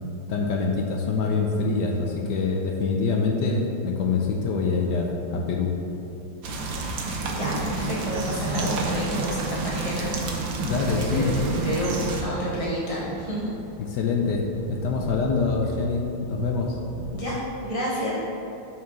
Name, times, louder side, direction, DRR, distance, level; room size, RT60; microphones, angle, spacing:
voice 1, 0.3-5.7 10.6-11.3 13.8-16.0 16.3-16.8, left 4 dB, 70° left, 1 dB, 1.1 m, -25 dB
sound 1, 6.4-12.2, right 3 dB, 55° right, 1.0 m, -29 dB
voice 2, 7.2-10.1 10.9-13.5 17.1-18.2, equal, 30° right, -6 dB, 0.6 m, -30 dB
sound 2, 9.1-17.3, right 2 dB, 85° right, 1.7 m, -41 dB
5.8 x 4.7 x 5.9 m, 2.9 s
omnidirectional pair, 2.1 m